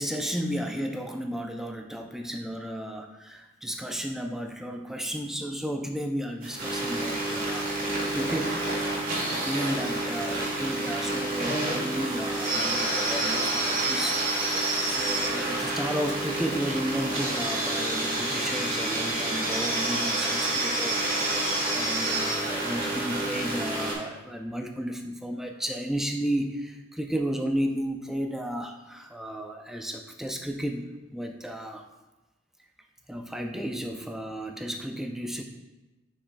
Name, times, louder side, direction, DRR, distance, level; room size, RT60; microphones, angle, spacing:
voice 1, 0.0-8.6 9.3-14.2 14.6-31.9 33.1-35.4, equal, ahead, 3 dB, 0.3 m, -33 dB
sound 1, 6.4-23.9, right 2 dB, 40° right, 1.8 m, -28 dB
6.8 x 5.5 x 2.5 m, 1.1 s
head